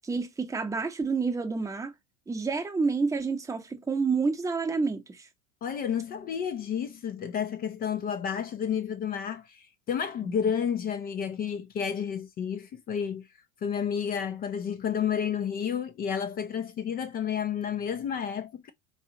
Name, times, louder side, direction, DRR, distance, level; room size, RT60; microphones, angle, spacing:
voice 1, 0.0-1.9 2.3-5.3 10.2-10.3, right 4 dB, 10° right, 0.7 m, -29 dB
voice 2, 5.6-13.2 13.6-18.7, left 8 dB, 25° left, 0.3 m, -31 dB
4.0 x 2.4 x 2.8 m
supercardioid pair, 115°, 39 cm